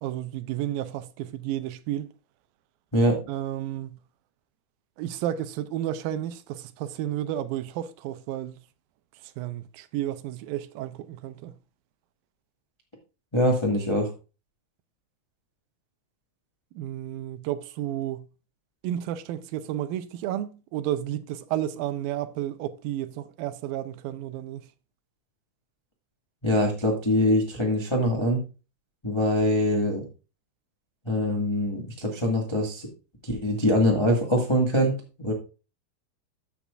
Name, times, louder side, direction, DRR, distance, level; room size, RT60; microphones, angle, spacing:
voice 1, 0.0-2.1 3.3-4.0 5.0-8.6 9.4-11.5 16.8-18.3 18.8-24.7, right 12 dB, 85° right, 2.4 m, -32 dB
voice 2, 13.3-14.1 26.4-28.4 29.0-30.0 31.0-32.9 33.2-35.3, equal, 25° left, 0.5 m, -23 dB
14.0 x 6.0 x 2.5 m
omnidirectional pair, 4.3 m